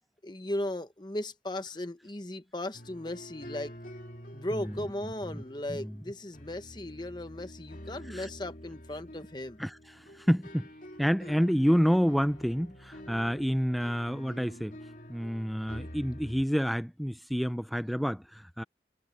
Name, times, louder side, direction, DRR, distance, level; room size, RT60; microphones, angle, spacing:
voice 1, 0.2-3.7 4.3-9.6, left 1 dB, 25° left, 1.1 m, -37 dB
sound 1, 2.7-16.4, equal, 50° left, 3.1 m, -47 dB
voice 2, 4.5-5.4 5.7-6.0 8.1-8.3 9.6-10.7 11.0-14.8 15.1-18.6, equal, ahead, 0.5 m, -29 dB
head